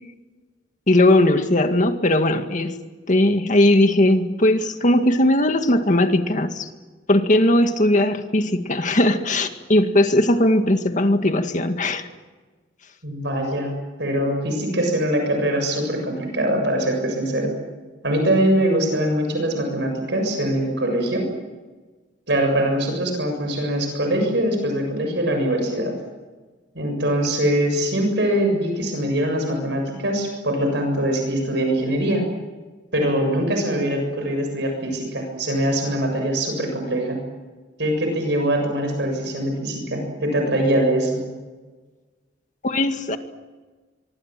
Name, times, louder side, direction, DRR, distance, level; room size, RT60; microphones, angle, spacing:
voice 1, 0.9-2.7 3.1-6.7 7.1-12.1 42.6-43.2, left 1 dB, 45° left, 7 dB, 2.0 m, -18 dB
voice 2, 13.0-13.7 14.0-17.6 18.0-21.3 22.3-25.9 26.8-32.2 32.9-37.2 37.8-41.2, right 1 dB, 70° right, 3 dB, 7.2 m, -22 dB
24.5 x 24.5 x 7.7 m, 1.3 s
head